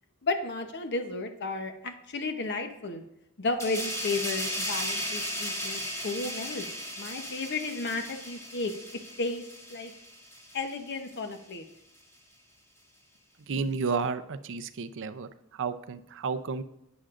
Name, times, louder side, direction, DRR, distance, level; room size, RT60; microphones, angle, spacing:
voice 1, 0.2-3.0 3.4-6.7 7.0-8.7 9.2-9.4 9.7-9.9 10.5-11.6, left 3 dB, 50° left, 6 dB, 0.8 m, -33 dB
sound 1, 3.6-10.8 11.1-11.3, equal, 15° left, 1.8 m, -36 dB
voice 2, 13.5-16.6, right 5 dB, 60° right, 12 dB, 0.5 m, -32 dB
11.5 x 8.8 x 2.5 m, 0.87 s
head